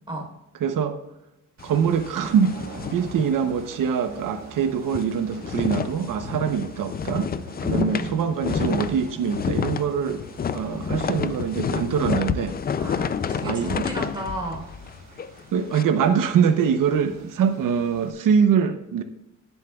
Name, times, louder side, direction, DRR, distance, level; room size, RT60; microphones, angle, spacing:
voice 1, 0.6-1.0 1.6-2.6 2.9-7.3 7.6-10.2 10.5-12.6 13.4-13.9 15.5-19.0, right 7 dB, 85° right, 8 dB, 0.8 m, -23 dB
sound 1, 1.6-3.9 4.2-4.3 4.7-15.8, left 7 dB, 30° left, 0.4 m, -29 dB
sound 2, 1.6-18.1, right 4 dB, 60° right, 1.4 m, -45 dB
voice 2, 7.6-8.3 12.8-14.7, right 2 dB, 15° right, -1 dB, 3.7 m, -33 dB
17.5 x 8.2 x 2.3 m, 0.90 s
wide cardioid pair, 160°, 32 cm